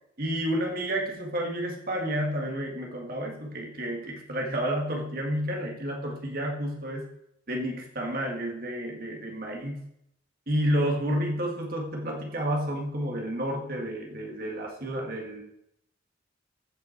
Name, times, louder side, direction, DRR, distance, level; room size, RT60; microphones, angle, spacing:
voice 1, 0.2-7.1 7.5-9.8 10.5-15.4, equal, 50° right, 0 dB, 1.8 m, -30 dB
15.0 x 5.6 x 4.5 m, 0.80 s
head